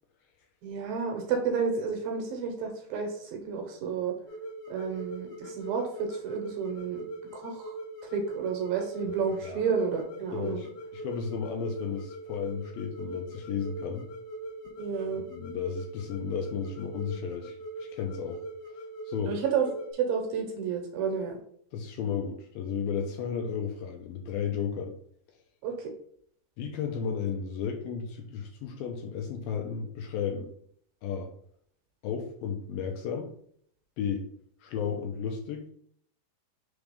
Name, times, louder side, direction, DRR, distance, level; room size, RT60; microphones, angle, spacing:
voice 1, 0.6-4.2 4.7-7.1 7.3-7.7 8.1-10.6 14.8-15.2 19.2-21.4 25.6-25.9, right 6 dB, 70° right, 2 dB, 2.5 m, -31 dB
sound 1, 4.3-19.9, right 1 dB, 55° left, 1.8 m, -41 dB
voice 2, 10.3-14.0 15.3-18.4 19.1-19.4 21.7-24.9 26.6-30.5 31.0-31.3 32.0-33.3 34.0-34.3 34.6-35.7, left 7 dB, 80° left, 2 dB, 2.3 m, -33 dB
6.1 x 3.5 x 5.1 m, 0.63 s
omnidirectional pair, 4.7 m